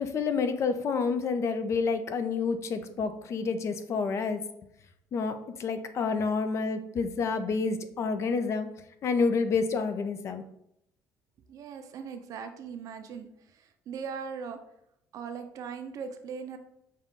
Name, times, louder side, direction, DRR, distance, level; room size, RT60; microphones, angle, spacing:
voice 1, 0.0-4.4 5.1-8.7 9.0-10.4, left 4 dB, 50° left, 9 dB, 0.5 m, -29 dB
voice 2, 11.5-14.6 15.1-16.6, right 6 dB, 60° right, 7 dB, 0.6 m, -39 dB
5.6 x 2.4 x 3.7 m, 0.78 s
cardioid pair, 100°, 6 cm